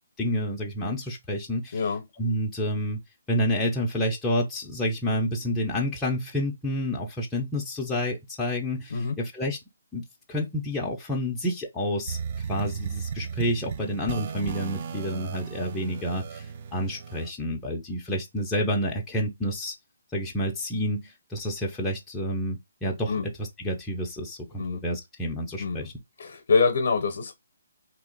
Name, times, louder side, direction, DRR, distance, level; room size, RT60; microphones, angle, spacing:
voice 1, 0.2-1.8 2.2-3.0 3.3-9.6 9.9-10.0 10.3-12.2 12.5-19.7 20.1-25.9, equal, 10° left, 0.6 m, -29 dB
sound 1, 12.1-17.3, right 6 dB, 40° right, 0.3 m, -35 dB
voice 2, 26.2-27.3, left 4 dB, 60° left, 0.7 m, -25 dB
2.9 x 2.4 x 3.7 m
hypercardioid pair, 150°, 0 cm